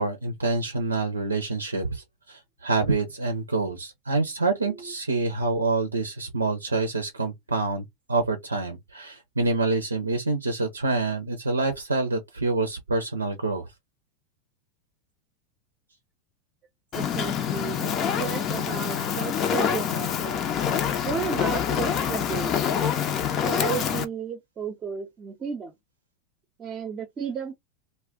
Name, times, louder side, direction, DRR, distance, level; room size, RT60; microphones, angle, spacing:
voice 1, 0.0-13.7, right 3 dB, 90° right, 0.5 m, -27 dB
Fire, 16.9-24.0, left 8 dB, 40° left, 0.6 m, -26 dB
voice 2, 16.9-20.5 21.0-22.7 23.5-25.7 26.6-27.6, right 6 dB, 30° right, 0.7 m, -33 dB
2.3 x 2.1 x 3.6 m
figure-of-eight pair, 85°, 0 cm